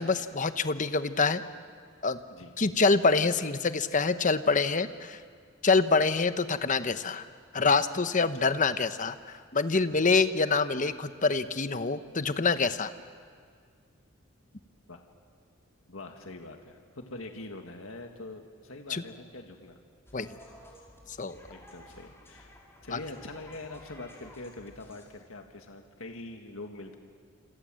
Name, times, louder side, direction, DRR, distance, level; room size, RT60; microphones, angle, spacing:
voice 1, 0.0-1.4 2.0-2.2 2.6-5.2 5.6-7.2 7.5-12.9 18.9-19.0 20.1-20.3 21.1-21.4 22.9-23.0, left 4 dB, 40° left, 11 dB, 1.0 m, -26 dB
voice 2, 2.3-2.8 8.2-8.5 9.9-10.0 14.9-15.0 15.9-19.8 21.5-27.0, left 2 dB, 80° left, 4 dB, 1.9 m, -44 dB
sound 1, 20.1-25.1, left 1 dB, 10° left, 5.1 m, -53 dB
28.0 x 26.5 x 7.7 m, 2.1 s
head